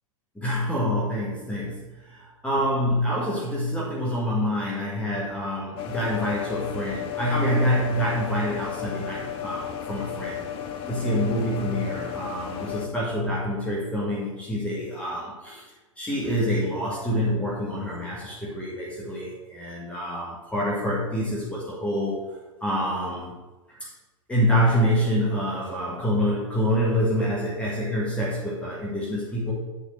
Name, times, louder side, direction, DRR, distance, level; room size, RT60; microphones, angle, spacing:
voice 1, 0.3-10.4 10.9-15.6 16.0-22.2 22.6-23.4 23.7-23.9 24.3-29.5, equal, 5° left, -6 dB, 1.5 m, -26 dB
sound 1, 5.8-12.9, left 9 dB, 35° left, 0.6 m, -34 dB
8.1 x 4.2 x 4.3 m, 1.1 s
figure-of-eight pair, 100°, 17 cm